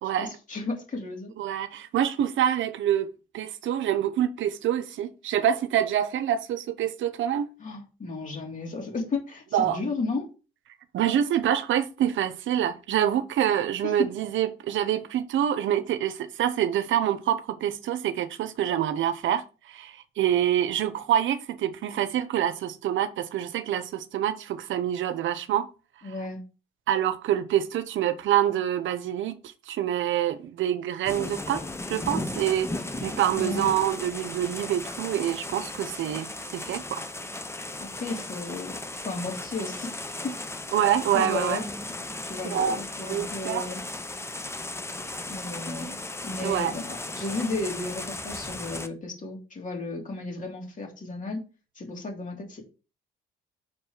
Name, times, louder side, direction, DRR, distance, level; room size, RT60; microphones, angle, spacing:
voice 1, 0.2-1.3 7.6-10.3 13.8-13.9 26.0-26.4 33.4-33.8 37.8-38.8 39.0-39.9 40.2-40.3 41.1-41.6 42.2-43.8 45.3-51.4 51.7-52.6, left 3 dB, 40° left, 3.1 m, -33 dB
voice 2, 1.4-7.5 9.5-9.8 10.9-25.7 26.0-26.1 26.9-29.4 29.7-37.0 40.7-41.6 42.5-42.8 43.1-43.7 46.4-46.7, right 10 dB, 75° right, 0.8 m, -26 dB
sound 1, 31.1-48.9, left 2 dB, 15° left, 0.8 m, -36 dB
6.0 x 4.6 x 5.0 m
cardioid pair, 90°, 20 cm